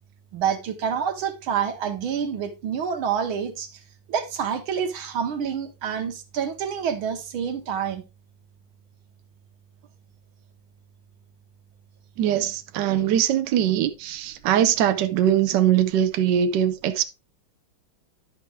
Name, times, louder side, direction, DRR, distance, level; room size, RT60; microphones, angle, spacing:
voice 1, 0.3-3.7 4.1-8.0, right 7 dB, 90° right, 2.0 m, -27 dB
voice 2, 12.2-17.0, right 10 dB, 70° right, 1.3 m, -21 dB
10.5 x 5.9 x 3.4 m
omnidirectional pair, 2.2 m